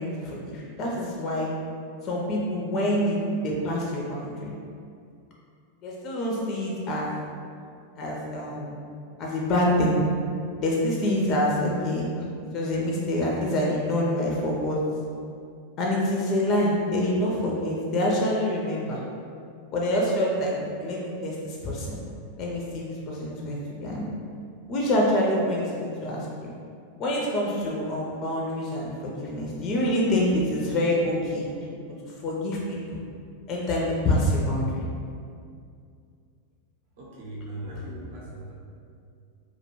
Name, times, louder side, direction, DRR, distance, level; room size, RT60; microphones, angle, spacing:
voice 1, 0.0-1.5 2.0-3.2 3.4-4.5 5.8-7.1 8.0-8.7 9.2-10.0 10.6-12.2 12.5-14.8 15.8-19.0 19.7-20.5 20.8-22.0 22.4-24.0 24.7-26.5 27.0-31.5 31.8-31.9 32.2-33.0 33.5-34.8, left 1 dB, 35° left, -3 dB, 0.4 m, -26 dB
voice 2, 37.0-38.5, right 1 dB, 50° right, -6 dB, 0.6 m, -38 dB
2.2 x 2.1 x 3.0 m, 2.3 s
figure-of-eight pair, 90°, 0 cm